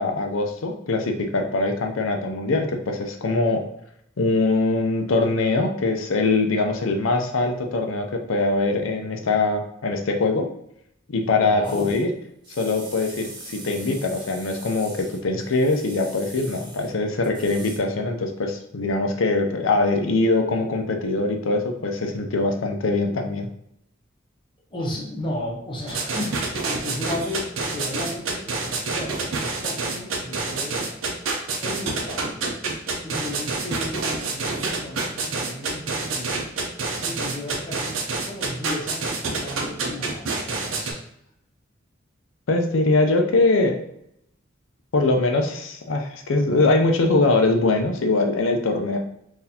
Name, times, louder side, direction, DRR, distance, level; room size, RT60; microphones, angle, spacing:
voice 1, 0.0-3.6 4.2-10.5 11.1-12.1 12.5-23.5 42.5-43.7 44.9-49.0, left 3 dB, 75° left, 4 dB, 0.6 m, -22 dB
voice 2, 11.2-12.0 24.7-30.9 31.6-32.4 33.0-36.6 37.0-37.9 38.2-41.0, left 1 dB, 25° left, -3 dB, 1.0 m, -34 dB
sound 1, 11.6-12.0 12.4-16.9 17.2-17.8, right 2 dB, 25° right, 0.8 m, -42 dB
sound 2, 25.9-40.9, right 3 dB, 90° right, 0.7 m, -27 dB
3.9 x 2.6 x 2.8 m, 0.75 s
head